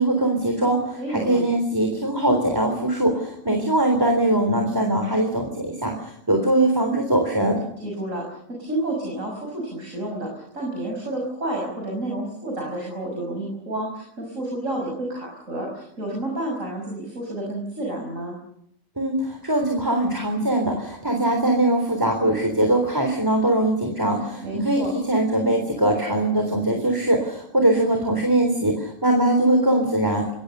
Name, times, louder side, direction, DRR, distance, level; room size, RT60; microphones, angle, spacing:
voice 1, 0.0-7.6 19.0-30.3, right 1 dB, 15° right, 3 dB, 3.7 m, -21 dB
voice 2, 1.0-1.4 7.8-18.4 24.4-24.9, right 1 dB, 70° right, 0 dB, 6.6 m, -30 dB
28.5 x 21.5 x 6.8 m, 0.73 s
omnidirectional pair, 1.4 m